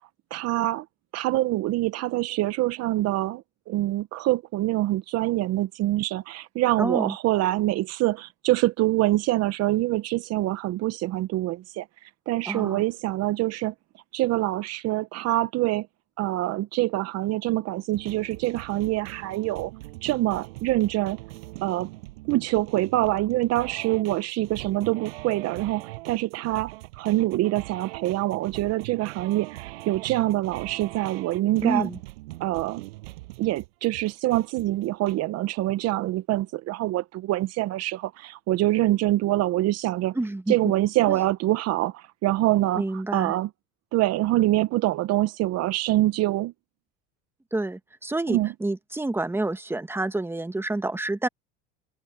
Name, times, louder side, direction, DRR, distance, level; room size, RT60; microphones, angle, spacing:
voice 1, 0.3-0.8 1.1-11.9 12.3-13.7 14.1-15.9 16.2-19.7 20.0-21.2 21.6-21.9 22.3-31.9 32.4-32.8 33.4-40.1 40.5-43.5 43.9-46.5 48.3-48.5, right 16 dB, 60° right, 0.9 m, -25 dB
voice 2, 6.8-7.1 12.4-12.8 31.6-32.0 40.1-40.5 41.1-41.2 42.8-43.3 47.5-51.3, right 2 dB, 10° right, 1.5 m, -28 dB
sound 1, 17.9-35.2, right 21 dB, 85° right, 7.3 m, -41 dB
supercardioid pair, 90°, 29 cm